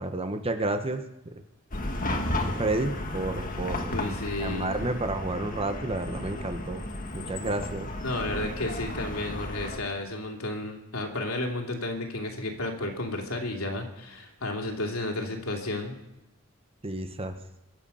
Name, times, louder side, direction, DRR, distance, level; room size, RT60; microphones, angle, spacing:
voice 1, 0.0-1.3 2.6-4.0 4.4-6.8 7.1-7.9 16.8-17.3, right 2 dB, 25° right, 7 dB, 1.1 m, -30 dB
Chatter / Car passing by / Traffic noise roadway noise, 1.7-9.8, left 1 dB, 40° left, 1.6 m, -33 dB
voice 2, 3.9-4.8 8.0-15.9, left 2 dB, 85° left, 2 dB, 2.9 m, -32 dB
23.5 x 8.1 x 5.7 m, 0.97 s
head